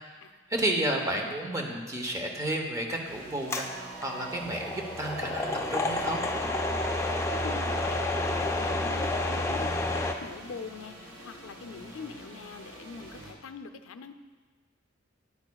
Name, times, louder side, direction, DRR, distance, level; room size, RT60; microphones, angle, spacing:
voice 1, 0.5-6.2, right 1 dB, 15° right, 2 dB, 0.9 m, -31 dB
sound 1, 3.0-13.3, right 1 dB, 75° right, 1.6 m, -47 dB
sound 2, 3.5-10.1, left 2 dB, 15° left, 0.4 m, -30 dB
Wind instrument woodwind instrument, 3.6-8.8, right 6 dB, 45° right, 0.4 m, -46 dB
voice 2, 7.0-14.2, left 5 dB, 90° left, 8 dB, 0.5 m, -43 dB
9.7 x 8.8 x 2.3 m, 1.4 s
head